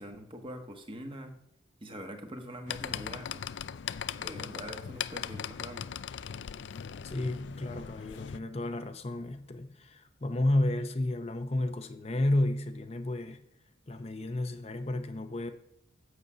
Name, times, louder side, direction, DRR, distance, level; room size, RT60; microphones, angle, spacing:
voice 1, 0.0-1.3 1.8-3.4 4.2-5.9, equal, 25° right, 1.3 m, -43 dB
sound 1, 2.7-8.4, left 8 dB, 70° left, 0.4 m, -39 dB
voice 2, 7.0-13.4 13.9-15.5, left 1 dB, 35° left, 0.7 m, -31 dB
8.1 x 6.9 x 7.6 m
head